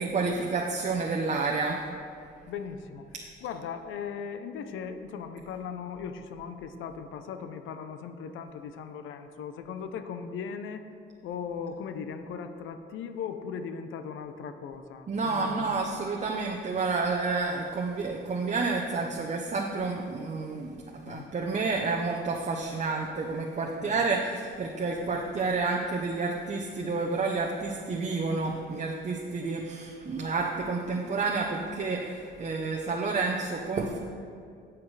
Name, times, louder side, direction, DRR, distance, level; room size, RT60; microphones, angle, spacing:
voice 1, 0.0-1.8 15.1-34.0, right 4 dB, 35° right, 0 dB, 0.8 m, -30 dB
voice 2, 2.5-3.1 3.4-10.9 11.2-15.8 21.0-21.3 23.6-24.0, left 6 dB, 80° left, 9 dB, 0.7 m, -38 dB
17.5 x 5.9 x 3.3 m, 2.3 s
cardioid pair, 90°, 20 cm